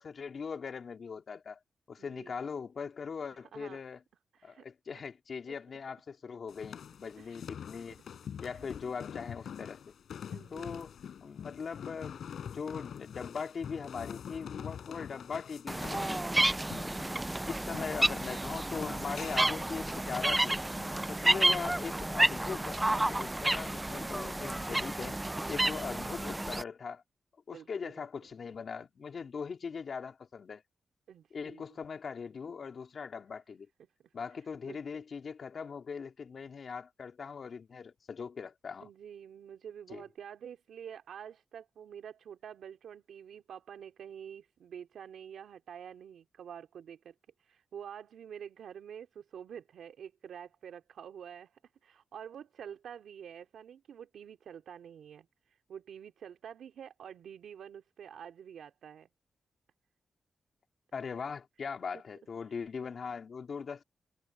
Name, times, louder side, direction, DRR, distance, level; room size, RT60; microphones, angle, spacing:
voice 1, 0.0-1.6 1.9-4.0 4.4-8.0 8.4-9.8 10.5-10.9 11.2-16.2 16.8-20.6 21.1-25.2 25.5-27.0 27.5-30.6 31.3-33.7 34.1-38.9 39.9-40.0 60.9-63.8, left 5 dB, 55° left, 3.3 m, -40 dB
voice 2, 2.0-2.4 3.5-3.8 4.3-4.6 4.9-5.0 5.5-5.6 7.2-7.4 7.7-7.8 8.5-8.7 10.3-10.9 21.2-21.7 27.5-28.1 31.1-31.8 34.3-35.0 38.8-59.1 61.9-62.0 62.5-62.6, right 8 dB, 90° right, 3.0 m, -48 dB
sound 1, 6.5-21.2, left 8 dB, 80° left, 4.8 m, -46 dB
sound 2, 15.7-26.6, right 1 dB, 15° right, 0.5 m, -31 dB
wide cardioid pair, 105°, 0 cm